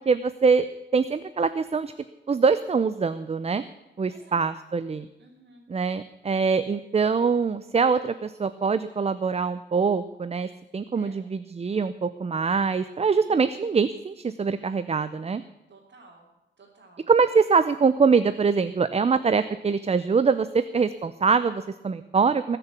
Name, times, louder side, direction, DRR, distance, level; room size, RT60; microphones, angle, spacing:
voice 1, 0.1-0.7 0.9-1.9 2.3-3.6 4.0-5.1 5.7-10.5 10.7-15.4 17.1-22.6, right 5 dB, 35° right, 13 dB, 0.5 m, -23 dB
voice 2, 4.1-4.4 5.2-5.6 10.9-11.2 13.2-13.6 15.7-16.3 16.6-17.1, right 2 dB, 70° right, -6 dB, 3.4 m, -54 dB
20.5 x 6.9 x 8.4 m, 1.0 s
wide cardioid pair, 125°, 19 cm